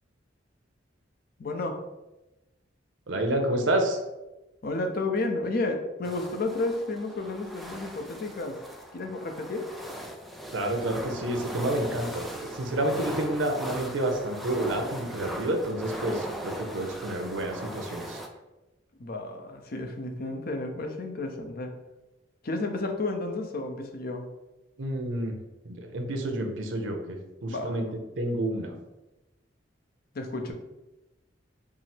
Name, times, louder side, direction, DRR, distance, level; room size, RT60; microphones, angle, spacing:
voice 1, 1.4-1.8 4.6-8.6 8.9-9.7 19.0-21.7 22.4-24.3 27.5-27.8 30.1-30.5, left 2 dB, 50° left, 4 dB, 0.6 m, -32 dB
voice 2, 3.1-4.0 10.5-18.2 24.8-25.4 25.6-27.9 28.2-28.7, right 1 dB, 90° right, 4 dB, 0.7 m, -29 dB
sound 1, 6.0-18.3, right 1 dB, ahead, 0.4 m, -39 dB
4.7 x 2.0 x 4.3 m, 1.0 s
head